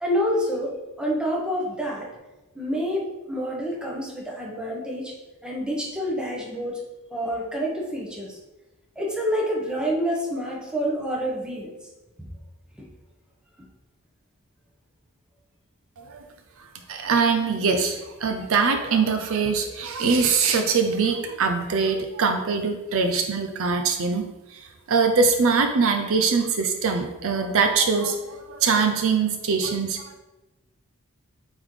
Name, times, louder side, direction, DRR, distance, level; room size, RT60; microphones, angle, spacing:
voice 1, 0.0-2.1 2.5-5.1 5.4-6.8 7.1-8.4 9.0-11.7 12.2-12.3 12.8-12.9, equal, 5° right, -3 dB, 1.1 m, -28 dB
voice 2, 16.9-24.2 24.5-24.6 24.9-30.2, right 5 dB, 65° right, 6 dB, 0.5 m, -23 dB
8.4 x 3.7 x 3.2 m, 1.1 s
head